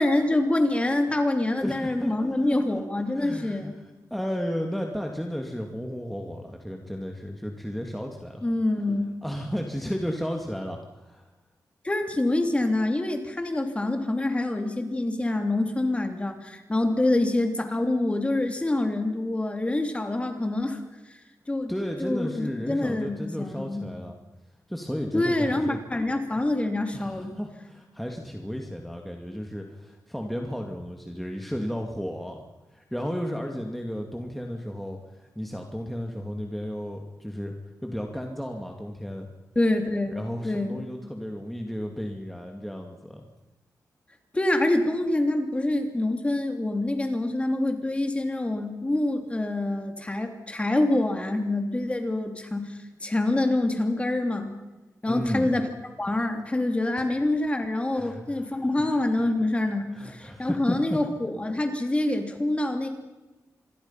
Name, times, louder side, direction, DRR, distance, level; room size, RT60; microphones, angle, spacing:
voice 1, 0.0-3.7 8.4-9.1 11.8-20.8 21.5-21.7 22.0-23.8 25.1-27.3 39.5-40.2 40.4-40.8 44.3-54.5 55.0-55.7 56.0-62.9, left 2 dB, 20° left, 5 dB, 3.1 m, -26 dB
voice 2, 1.6-2.8 3.1-3.7 4.1-8.4 9.2-11.2 21.7-24.2 24.7-25.8 26.9-32.4 32.7-37.5 37.8-39.3 40.1-43.3 55.1-55.5 57.9-58.5 59.2-59.3 59.9-61.0, equal, ahead, 2 dB, 2.3 m, -33 dB
27.0 x 22.0 x 5.8 m, 1.1 s
wide cardioid pair, 125°, 7 cm